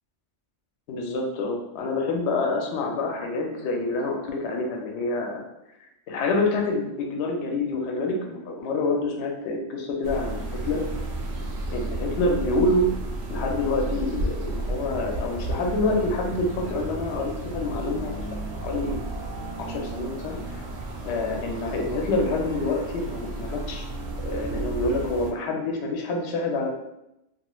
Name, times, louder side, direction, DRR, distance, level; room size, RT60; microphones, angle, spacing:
voice 1, 0.9-5.4 5.8-10.8 11.7-12.9 13.3-18.2 18.6-19.1 19.6-20.7 21.0-23.8 24.2-26.7, left 2 dB, 70° left, 1 dB, 0.8 m, -27 dB
sound 1, 10.0-25.3, right 2 dB, 65° right, 0.8 m, -32 dB
3.0 x 2.6 x 2.3 m, 0.88 s
omnidirectional pair, 1.2 m